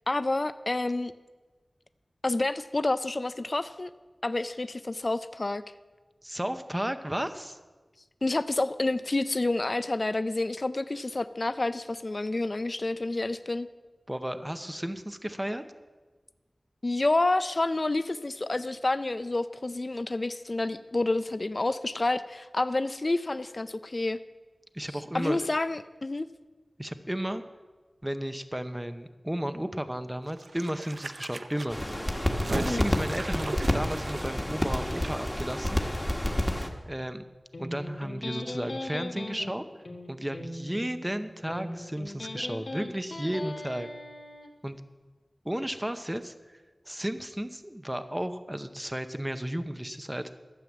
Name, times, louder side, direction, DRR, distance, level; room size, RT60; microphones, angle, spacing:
voice 1, 0.1-1.1 2.2-3.9 4.2-5.6 8.2-13.7 16.8-24.2 25.1-26.3 32.5-32.9, left 2 dB, 50° left, 12 dB, 0.4 m, -29 dB
voice 2, 6.2-7.6 14.1-15.6 24.7-25.4 26.8-27.4 28.0-31.8 32.5-35.8 36.8-37.2 37.6-39.6 40.1-43.9 44.6-44.8 45.4-46.6 46.9-50.3, equal, 15° right, 10 dB, 0.7 m, -33 dB
Disgusting Gush, 30.3-35.1 35.4-35.5, right 3 dB, 90° right, 0.6 m, -39 dB
sound 1, 31.7-36.7, left 1 dB, 10° left, 1.4 m, -29 dB
Electric guitar, 37.5-44.5, left 1 dB, 80° left, 1.9 m, -39 dB
13.0 x 7.5 x 7.4 m, 1.3 s
wide cardioid pair, 60°, 0 cm